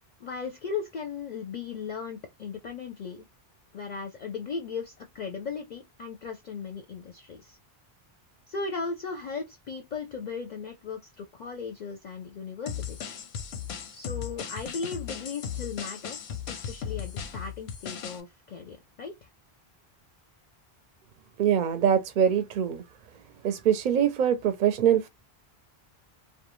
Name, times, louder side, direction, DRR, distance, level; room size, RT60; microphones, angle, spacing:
voice 1, 0.2-3.3 3.7-7.6 8.5-13.1 13.9-16.2 16.5-19.3, left 5 dB, 55° left, 0.5 m, -37 dB
sound 1, 12.7-18.2, left 8 dB, 90° left, 0.9 m, -37 dB
voice 2, 21.4-22.8 23.4-25.1, right 9 dB, 55° right, 0.6 m, -23 dB
2.3 x 2.2 x 3.0 m
omnidirectional pair, 1.0 m